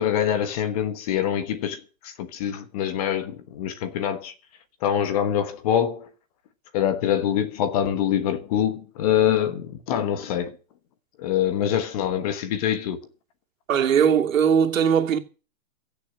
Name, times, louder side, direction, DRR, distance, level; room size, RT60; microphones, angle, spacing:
voice 1, 0.0-4.3 4.8-6.1 6.7-10.5 11.2-13.0, left 10 dB, 30° left, 1.3 m, -25 dB
voice 2, 13.7-15.2, right 7 dB, 75° right, 2.7 m, -19 dB
15.5 x 6.9 x 8.3 m
hypercardioid pair, 170°, 40 cm